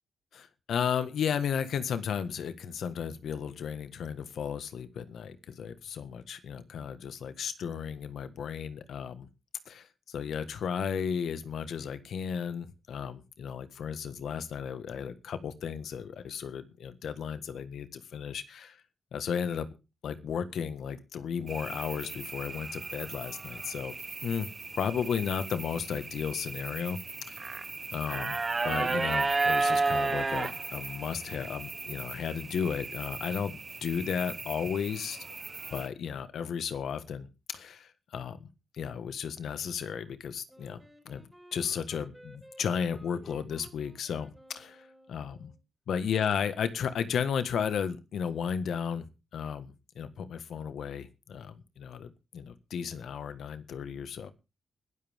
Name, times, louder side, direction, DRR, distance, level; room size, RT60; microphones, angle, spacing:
voice 1, 0.3-9.3 9.6-18.8 19.1-19.7 20.0-23.9 24.2-27.0 27.3-27.4 27.9-28.4 28.6-35.2 35.7-37.3 37.5-38.5 38.7-41.2 41.5-44.3 44.5-45.5 45.9-49.0 49.3-54.3, left 7 dB, 80° left, 11 dB, 1.6 m, -34 dB
sound 1, 21.5-35.9, right 3 dB, 25° right, 0.8 m, -34 dB
Wind instrument woodwind instrument, 40.5-45.6, equal, 5° right, 4.9 m, -55 dB
21.5 x 13.0 x 3.6 m, 0.30 s
wide cardioid pair, 165°, 0 cm